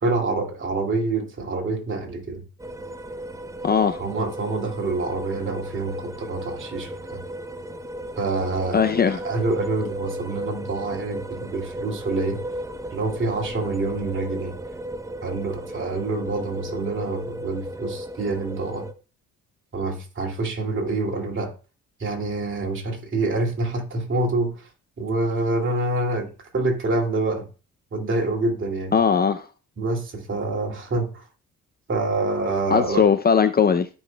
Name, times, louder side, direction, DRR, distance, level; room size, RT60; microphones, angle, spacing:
voice 1, 0.0-2.4 4.0-7.2 8.2-12.4 12.9-14.6 15.2-18.9 19.7-21.5 22.0-24.7 25.0-27.5 27.9-29.0 29.8-31.2 31.9-33.1, right 2 dB, 40° right, 2.5 m, -26 dB
sound 1, 2.6-18.9, right 1 dB, 10° right, 0.6 m, -35 dB
voice 2, 3.6-4.0 8.7-9.2 28.9-29.5 32.7-33.9, left 6 dB, 30° left, 0.5 m, -19 dB
14.5 x 5.5 x 2.2 m
cardioid pair, 90°, 30 cm